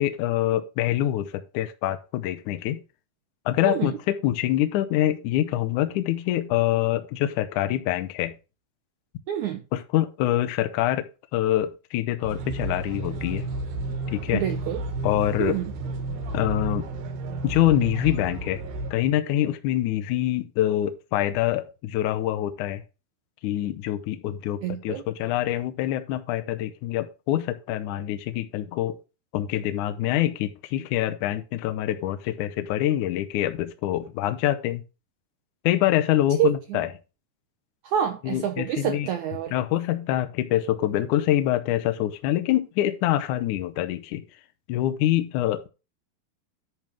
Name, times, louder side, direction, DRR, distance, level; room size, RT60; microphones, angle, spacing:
voice 1, 0.0-2.8 3.5-8.3 9.7-13.5 14.1-14.4 15.0-15.6 16.3-16.9 17.4-18.6 18.9-22.8 23.4-29.0 29.3-34.8 35.6-36.9 38.2-39.1 39.5-44.2 44.7-45.7, left 13 dB, 75° left, 9 dB, 1.9 m, -25 dB
voice 2, 9.3-9.6 14.3-14.8 15.4-15.7 24.6-25.0 36.4-36.8 37.8-39.5, right 11 dB, 90° right, 5 dB, 1.7 m, -27 dB
sound 1, 12.2-18.9, right 2 dB, 70° right, 2.9 m, -32 dB
10.5 x 3.6 x 6.0 m, 0.30 s
omnidirectional pair, 4.5 m